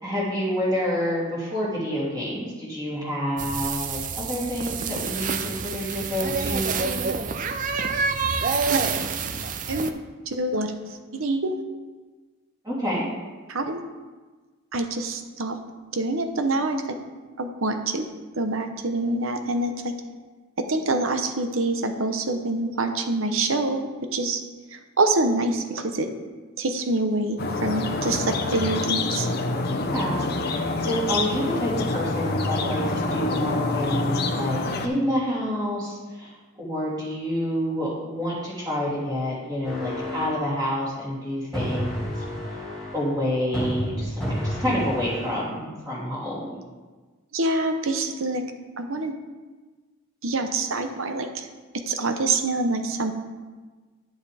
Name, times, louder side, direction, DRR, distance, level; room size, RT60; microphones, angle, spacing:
voice 1, 0.0-7.1 12.6-13.0 29.6-36.3 36.6-42.2 42.9-46.4, equal, 20° right, -8 dB, 3.2 m, -28 dB
sound 1, 3.4-9.9, right 5 dB, 35° right, 0.4 m, -27 dB
voice 2, 9.7-10.0 10.3-10.7 11.1-11.5 13.5-13.8 14.7-15.6 15.9-17.0 17.4-18.1 18.4-19.9 20.7-24.4 24.7-26.1 26.6-29.3 47.3-48.4 48.8-49.1 50.2-51.5 51.9-53.1, right 2 dB, 65° right, 6 dB, 0.9 m, -26 dB
sound 2, 27.4-34.9, left 2 dB, 45° left, 0.7 m, -26 dB
sound 3, 39.6-40.5 41.5-43.1 43.5-45.4, equal, ahead, 3.0 m, -30 dB
11.0 x 7.2 x 3.5 m, 1.3 s
head